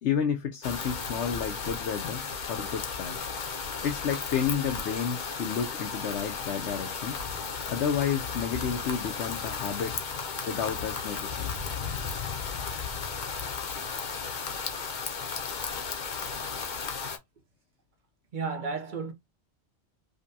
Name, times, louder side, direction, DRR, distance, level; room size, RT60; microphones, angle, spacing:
voice 1, 0.0-2.2 2.5-3.2 3.8-7.2 7.7-9.9 10.5-11.5, left 7 dB, 85° left, 1.0 m, -31 dB
sound 1, 0.6-17.2, left 5 dB, 50° left, 0.8 m, -34 dB
voice 2, 18.3-19.1, right 4 dB, 50° right, 0.8 m, -34 dB
5.2 x 2.2 x 2.7 m
omnidirectional pair, 1.1 m